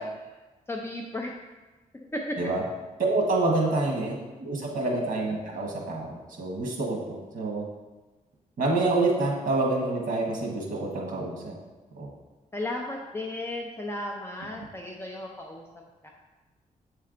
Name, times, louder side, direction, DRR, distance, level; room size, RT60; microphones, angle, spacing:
voice 1, 0.7-1.3 1.9-2.4 3.7-4.0 4.8-5.0 12.5-15.6 16.0-16.1, left 1 dB, 15° left, 0 dB, 0.5 m, -35 dB
voice 2, 3.0-7.6 8.6-11.6 11.9-12.1, right 2 dB, 65° right, -1 dB, 1.3 m, -27 dB
8.0 x 3.3 x 3.8 m, 1.2 s
wide cardioid pair, 115°, 14 cm